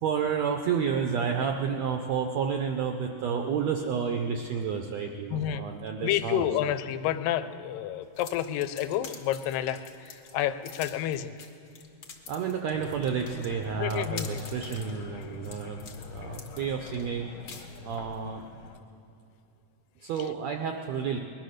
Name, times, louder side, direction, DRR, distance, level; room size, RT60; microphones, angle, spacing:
voice 1, 0.0-6.5 12.3-18.4 20.0-21.2, right 6 dB, 80° right, 4 dB, 1.5 m, -30 dB
voice 2, 5.3-5.6 6.0-11.4 13.8-14.4, left 11 dB, 90° left, 11 dB, 2.3 m, -30 dB
sound 1, 8.1-18.2, left 6 dB, 55° left, 1.8 m, -46 dB
sound 2, 12.7-18.8, left 4 dB, 70° left, 2.3 m, -43 dB
20.5 x 11.0 x 6.4 m, 2.5 s
omnidirectional pair, 3.9 m